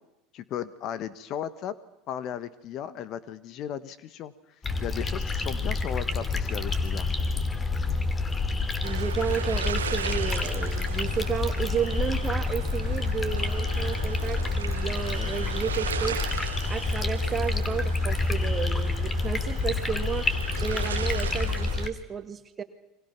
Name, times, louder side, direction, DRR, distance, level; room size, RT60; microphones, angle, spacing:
voice 1, 0.3-1.7 2.1-4.3 4.8-7.1, left 10 dB, 50° left, 16 dB, 1.5 m, -35 dB
sound 1, 4.6-21.9, left 3 dB, 20° left, 2.7 m, -28 dB
voice 2, 8.8-16.2 16.7-22.6, right 7 dB, 35° right, 8 dB, 1.9 m, -32 dB
sound 2, 8.8-21.9, right 8 dB, 85° right, 1.3 m, -38 dB
29.5 x 24.0 x 6.1 m, 0.93 s
hypercardioid pair, 80°, 0 cm